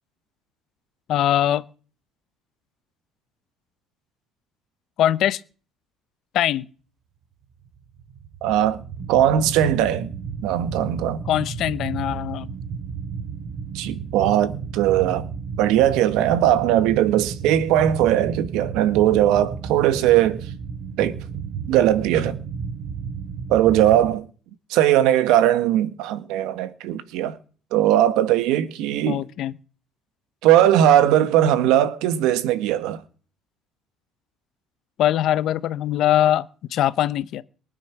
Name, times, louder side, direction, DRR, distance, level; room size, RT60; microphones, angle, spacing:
voice 1, 1.1-1.6 5.0-5.4 6.3-6.7 11.3-12.5 29.1-29.5 35.0-37.4, left 12 dB, 55° left, 0.9 m, -22 dB
sound 1, 7.8-24.2, right 6 dB, 50° right, 2.5 m, -33 dB
voice 2, 8.4-10.1 10.4-11.2 13.7-15.3 15.6-20.4 21.0-21.2 21.7-22.4 23.5-24.2 24.7-27.4 27.7-29.2 30.4-33.0, right 11 dB, 85° right, 1.6 m, -19 dB
23.0 x 9.1 x 6.1 m
cardioid pair, 150°, 0 cm